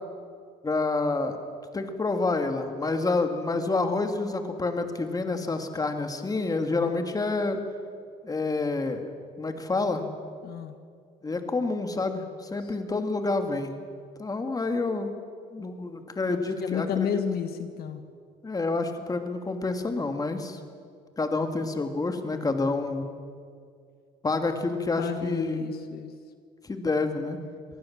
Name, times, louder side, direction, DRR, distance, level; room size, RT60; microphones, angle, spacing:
voice 1, 0.6-1.4 1.7-7.6 8.2-9.1 9.4-10.0 11.2-13.7 14.2-15.1 15.5-17.2 18.4-20.6 21.2-23.0 24.2-25.7 26.6-27.4, left 3 dB, 20° left, 6 dB, 2.4 m, -28 dB
voice 2, 10.4-10.8 12.6-12.7 16.6-18.0 25.0-26.1, left 8 dB, 65° left, 8 dB, 1.5 m, -31 dB
25.5 x 19.5 x 7.5 m, 2.2 s
cardioid pair, 110°, 17 cm